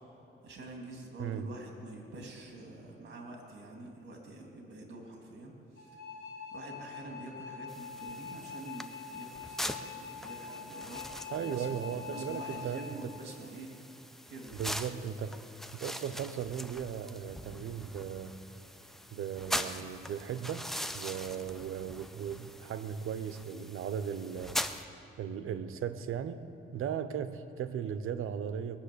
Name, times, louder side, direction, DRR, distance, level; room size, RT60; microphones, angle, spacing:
voice 1, 0.4-5.9 6.5-13.7 14.3-14.5, right 2 dB, 55° right, 1 dB, 2.7 m, -46 dB
voice 2, 1.2-1.5 11.3-12.9 14.5-18.4 19.1-20.7 20.9-24.6 25.2-28.8, right 8 dB, 80° right, 12 dB, 0.8 m, -37 dB
sound 1, 5.8-12.9, left 6 dB, 55° left, 3.4 m, -44 dB
sound 2, 7.7-24.8, equal, ahead, 0.6 m, -42 dB
19.5 x 7.0 x 8.4 m, 2.7 s
cardioid pair, 105°, 21 cm